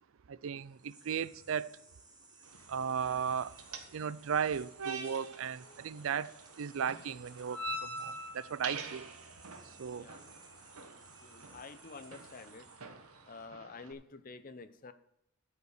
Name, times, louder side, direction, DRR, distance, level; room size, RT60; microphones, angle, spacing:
voice 1, 0.3-1.8 2.7-3.6 3.9-9.1 9.6-10.1, right 7 dB, 65° right, 0.4 m, -36 dB
sound 1, 0.6-13.5, right 3 dB, 20° right, 1.6 m, -59 dB
sound 2, 2.4-13.9, right 3 dB, 85° right, 1.4 m, -45 dB
voice 2, 11.2-12.7 13.3-14.9, left 4 dB, 40° left, 0.7 m, -49 dB
12.0 x 5.6 x 6.5 m
head